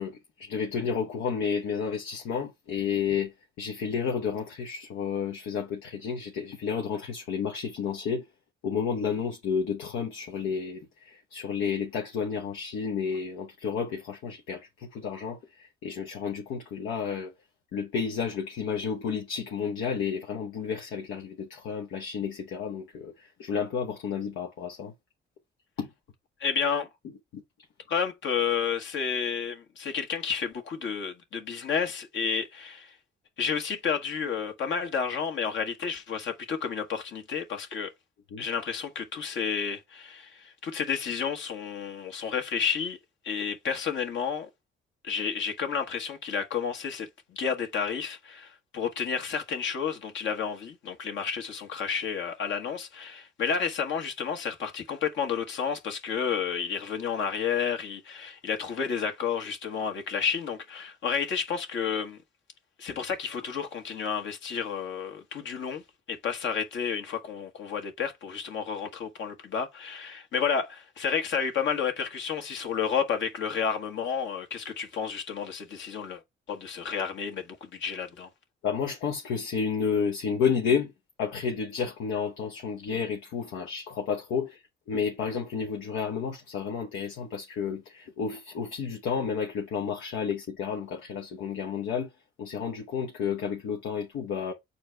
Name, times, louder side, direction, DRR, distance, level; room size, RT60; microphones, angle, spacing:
voice 1, 0.0-8.3 8.6-17.3 17.7-24.9 25.8-25.9 27.3-27.4 38.3-38.4 78.6-80.9 81.2-92.1 92.4-94.5, left 6 dB, 85° left, 1.0 m, -31 dB
voice 2, 26.4-26.9 27.9-32.9 33.4-37.9 38.4-43.0 43.2-44.5 45.0-62.2 62.8-65.8 66.1-76.2 76.5-78.3, left 6 dB, 70° left, 1.6 m, -31 dB
6.6 x 4.3 x 3.4 m
cardioid pair, 90°, 20 cm